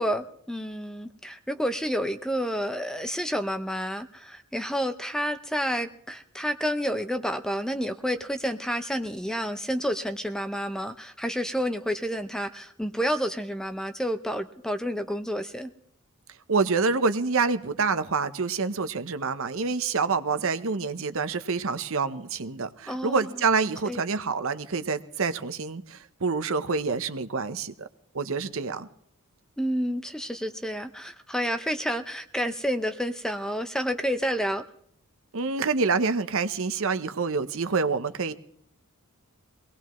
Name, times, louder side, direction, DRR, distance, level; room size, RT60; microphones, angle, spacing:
voice 1, 0.0-15.7 22.9-23.3 23.9-24.0 29.6-34.6, equal, 5° left, 9 dB, 0.6 m, -29 dB
voice 2, 16.5-27.9 28.1-28.9 35.3-38.3, right 4 dB, 65° right, 11 dB, 0.8 m, -27 dB
23.5 x 18.0 x 3.1 m, 0.69 s
head